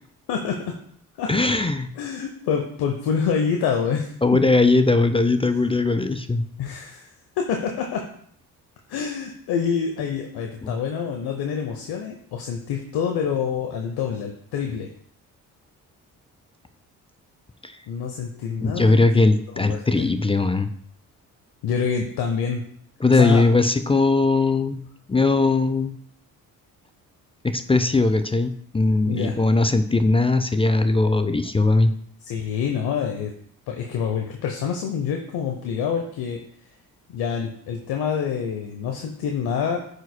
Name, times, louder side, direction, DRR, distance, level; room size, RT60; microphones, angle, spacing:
voice 1, 0.3-0.8 1.2-1.3 2.0-4.4 6.6-7.1 7.4-8.0 8.9-14.9 17.9-19.2 19.5-20.1 21.6-22.6 23.1-23.4 29.1-29.3 32.3-33.3 33.7-36.4 37.1-39.8, left 7 dB, 65° left, 3 dB, 0.9 m, -27 dB
voice 2, 1.3-1.9 4.2-6.4 10.6-10.7 17.6-17.7 18.6-20.7 23.0-26.0 27.4-31.9, left 3 dB, 15° left, 9 dB, 0.5 m, -20 dB
9.0 x 4.9 x 2.2 m, 0.64 s
hypercardioid pair, 50°, 42 cm